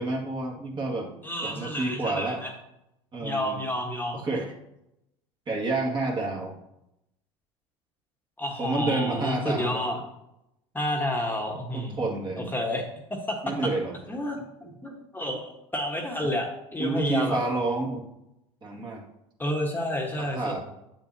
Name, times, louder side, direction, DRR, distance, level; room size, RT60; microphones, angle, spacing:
voice 1, 0.0-1.1 1.4-2.4 3.1-3.6 4.1-4.5 5.5-6.5 8.6-9.8 11.7-12.5 13.4-13.9 14.6-14.8 16.8-18.1 18.6-19.0 20.2-20.6, right 2 dB, 30° right, 0 dB, 1.9 m, -29 dB
voice 2, 1.2-2.5 3.2-4.2 8.4-10.0 10.7-12.0 12.5-12.8 13.3-13.4 14.1-14.4 14.8-17.4 19.4-20.6, left 1 dB, 15° left, 0 dB, 1.3 m, -30 dB
7.9 x 7.2 x 2.8 m, 0.84 s
hypercardioid pair, 75°, 15 cm